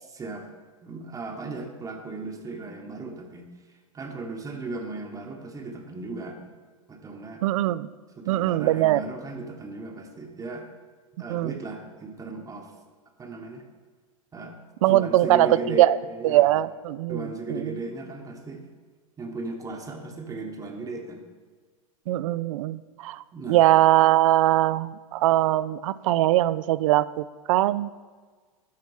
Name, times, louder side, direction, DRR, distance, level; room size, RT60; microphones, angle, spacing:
voice 1, 0.1-0.5 0.8-6.4 6.9-7.4 8.2-10.7 11.2-12.7 13.2-13.7 14.3-14.6 14.9-16.6 17.1-18.7 19.2-21.2 23.3-23.7, right 2 dB, 20° right, 3 dB, 1.0 m, -36 dB
voice 2, 7.4-7.9 8.3-9.0 11.3-11.5 14.8-16.0 16.2-17.8 22.1-27.9, right 15 dB, 65° right, 17 dB, 0.4 m, -21 dB
11.5 x 4.4 x 4.7 m, 1.5 s
hypercardioid pair, 110°, 18 cm